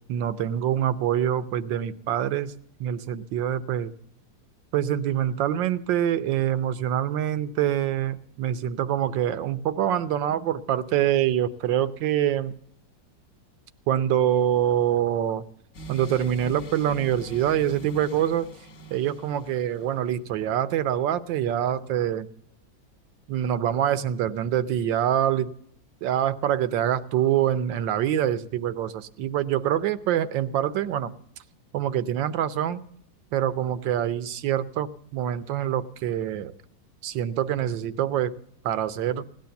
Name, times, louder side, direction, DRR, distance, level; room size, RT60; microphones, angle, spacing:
voice 1, 0.1-2.5 2.8-3.9 4.7-12.5 13.9-15.4 15.9-18.5 18.9-22.3 23.3-25.5 26.0-31.1 31.7-32.8 33.3-36.5 37.0-38.3 38.6-39.3, right 10 dB, 80° right, 13 dB, 1.5 m, -25 dB
sound 1, 15.7-20.1, right 2 dB, 45° left, 1.5 m, -43 dB
17.0 x 10.5 x 7.0 m, 0.67 s
omnidirectional pair, 2.0 m